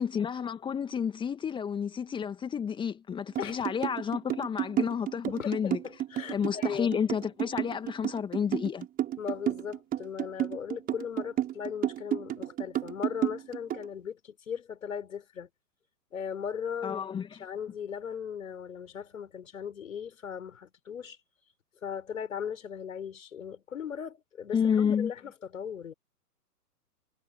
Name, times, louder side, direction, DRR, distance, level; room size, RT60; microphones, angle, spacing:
voice 1, 0.0-5.8 6.3-8.9 16.8-17.3 24.5-25.1, left 7 dB, 10° left, 2.0 m, -30 dB
sound 1, 3.3-13.9, right 12 dB, 20° right, 6.3 m, -31 dB
voice 2, 5.3-6.9 9.2-15.5 16.1-17.0 17.4-21.2 21.8-25.9, left 7 dB, 55° left, 5.3 m, -38 dB
figure-of-eight pair, 120°, 48 cm